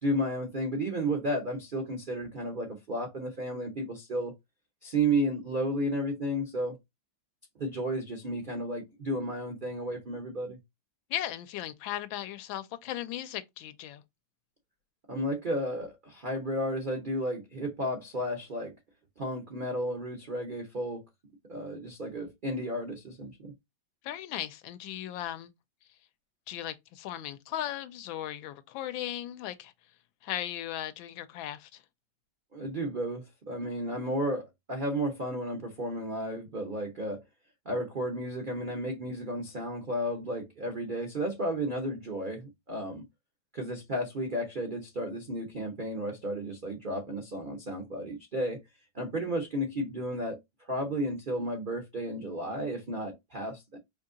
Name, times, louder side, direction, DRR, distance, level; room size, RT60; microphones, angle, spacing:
voice 1, 0.0-4.3 4.8-6.8 7.6-10.6 15.1-18.7 19.2-21.0 21.5-23.5 32.5-37.2 37.7-43.0 43.5-48.6 48.9-50.4 50.7-53.8, right 1 dB, 80° right, 0.4 m, -33 dB
voice 2, 11.1-14.0 24.0-25.5 26.5-29.7 30.2-31.8, left 12 dB, 85° left, 1.3 m, -37 dB
5.0 x 2.8 x 2.5 m
omnidirectional pair, 2.1 m